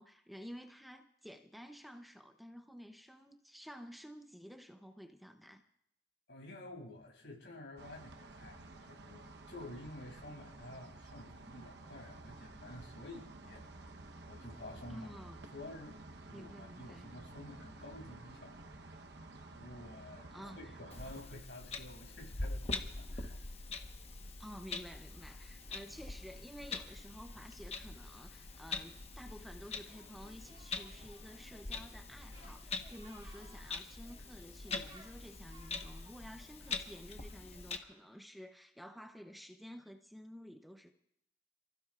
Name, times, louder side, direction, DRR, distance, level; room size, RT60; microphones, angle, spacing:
voice 1, 0.0-5.7 14.9-15.4 16.3-17.1 20.3-20.8 24.4-40.9, equal, ahead, 4 dB, 0.7 m, -52 dB
voice 2, 6.3-13.9 14.3-15.1 15.5-16.0 16.3-18.9 19.5-23.5, left 1 dB, 75° left, 0 dB, 6.9 m, -51 dB
sound 1, 7.8-21.2, right 2 dB, 70° right, 1.0 m, -52 dB
Clock, 20.9-37.8, left 3 dB, 35° left, 1.2 m, -44 dB
Singing, 29.9-38.2, right 2 dB, 30° right, 3.3 m, -63 dB
28.5 x 15.5 x 2.4 m, 0.76 s
head